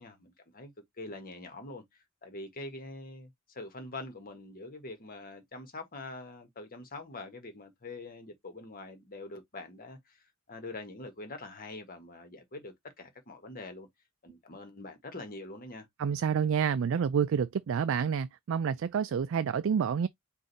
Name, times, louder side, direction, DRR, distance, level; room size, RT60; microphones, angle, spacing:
voice 1, 0.0-13.9 14.2-15.9, left 2 dB, 40° left, 1.5 m, -44 dB
voice 2, 16.0-20.1, right 7 dB, 65° right, 0.3 m, -28 dB
5.0 x 2.6 x 4.0 m
head